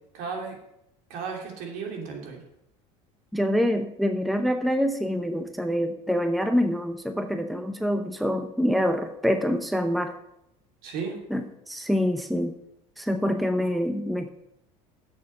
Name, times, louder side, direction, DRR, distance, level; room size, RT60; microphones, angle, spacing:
voice 1, 0.1-0.6 1.1-2.4 10.8-11.2, right 5 dB, 65° right, 2 dB, 2.9 m, -34 dB
voice 2, 3.3-10.2 11.3-12.6 13.0-14.3, equal, ahead, 7 dB, 0.7 m, -26 dB
8.4 x 6.7 x 6.5 m, 0.82 s
supercardioid pair, 105°, 15 cm